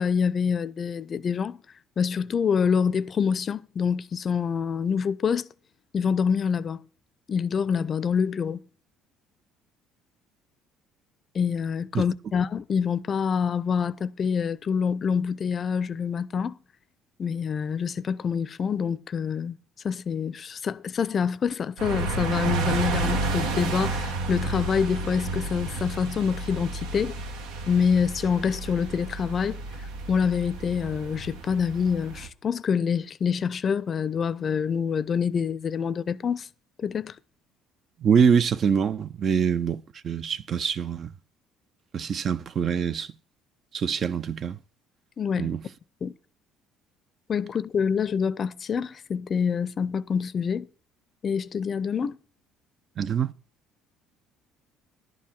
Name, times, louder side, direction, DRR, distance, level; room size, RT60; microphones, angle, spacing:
voice 1, 0.0-1.6 2.0-5.5 5.9-6.8 7.3-8.6 11.3-16.6 17.2-19.5 19.8-27.1 27.7-29.6 30.1-36.5 36.8-37.2 45.2-45.5 46.0-46.1 47.3-50.7 51.2-52.2, left 6 dB, 40° left, 0.5 m, -26 dB
sound 1, 21.8-32.3, right 3 dB, 90° right, 1.3 m, -31 dB
voice 2, 38.0-41.1 41.9-43.1 43.7-44.6 45.4-45.6 53.0-53.3, right 7 dB, 45° right, 0.5 m, -24 dB
11.0 x 4.7 x 7.3 m
cardioid pair, 95°, 0 cm